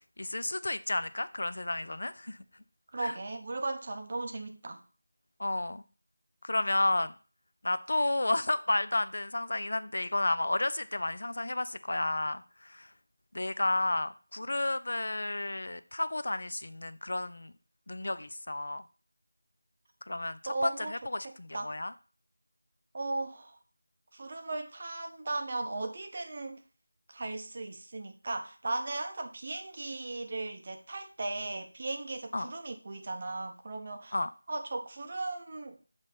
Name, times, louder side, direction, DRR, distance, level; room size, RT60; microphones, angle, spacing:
voice 1, 0.2-2.4 3.0-3.2 5.4-5.8 6.4-7.1 7.6-12.9 13.3-17.5 17.9-18.8 20.1-21.9 32.3-32.5 34.1-34.3, left 2 dB, 50° left, 0.3 m, -32 dB
voice 2, 2.9-4.8 20.5-20.9 21.2-21.7 22.9-23.6 24.1-26.6 27.1-34.1 34.5-35.8, right 2 dB, 25° right, 0.6 m, -37 dB
7.4 x 3.2 x 4.1 m
figure-of-eight pair, 180°, 0 cm